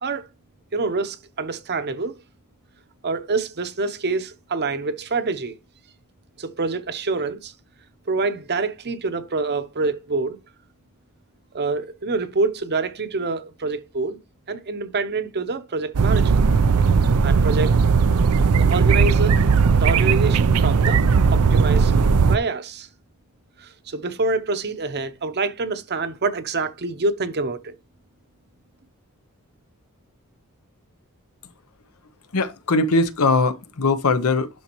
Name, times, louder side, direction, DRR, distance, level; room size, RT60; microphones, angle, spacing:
voice 1, 0.7-2.2 3.0-5.6 6.4-7.5 8.1-10.4 11.5-14.2 14.5-16.4 17.2-17.8 18.6-19.3 19.7-21.9 22.2-22.9 23.6-27.7, right 3 dB, 50° right, 0.9 m, -26 dB
sound 1, 15.9-22.4, right 5 dB, 75° right, 0.5 m, -17 dB
voice 2, 32.3-34.5, left 3 dB, 75° left, 0.8 m, -20 dB
11.5 x 4.0 x 3.0 m
head